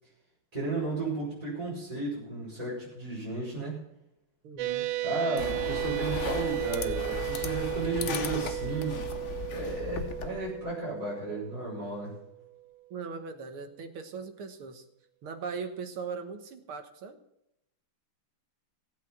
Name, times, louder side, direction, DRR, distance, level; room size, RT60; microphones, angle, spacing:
voice 1, 0.5-3.8 5.0-9.1 9.5-12.2, right 2 dB, 15° right, -7 dB, 5.6 m, -34 dB
voice 2, 4.4-4.9 12.9-14.9 15.2-17.2, right 5 dB, 90° right, 7 dB, 2.2 m, -39 dB
sound 1, 4.6-12.6, right 16 dB, 70° right, 1.2 m, -35 dB
sound 2, 5.4-10.7, left 6 dB, 50° left, 0.9 m, -37 dB
16.0 x 8.4 x 5.9 m, 0.83 s
omnidirectional pair, 2.3 m